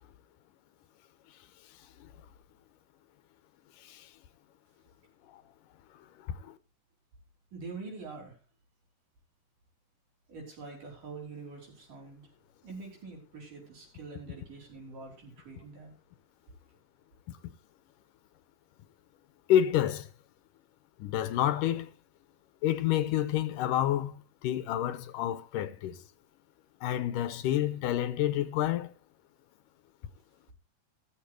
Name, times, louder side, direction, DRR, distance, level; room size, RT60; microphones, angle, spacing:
voice 1, 7.5-8.4 10.3-12.2 12.6-15.9, right 4 dB, 75° right, 7.0 m, -45 dB
voice 2, 19.5-20.1 21.0-21.9 22.6-26.0 26.8-28.9, left 11 dB, 85° left, 2.5 m, -28 dB
14.0 x 14.0 x 3.2 m
omnidirectional pair, 3.7 m